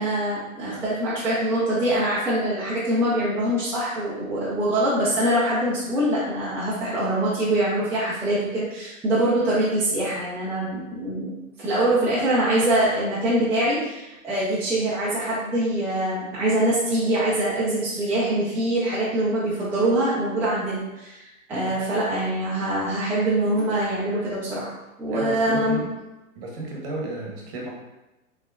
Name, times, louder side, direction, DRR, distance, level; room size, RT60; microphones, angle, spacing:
voice 1, 0.0-11.3 11.6-24.7 25.0-25.8, right 1 dB, 5° right, -10 dB, 0.5 m, -24 dB
voice 2, 25.1-25.9 26.3-27.7, right 2 dB, 40° right, -2 dB, 1.0 m, -33 dB
3.5 x 3.2 x 2.3 m, 0.98 s
hypercardioid pair, 120°, 42 cm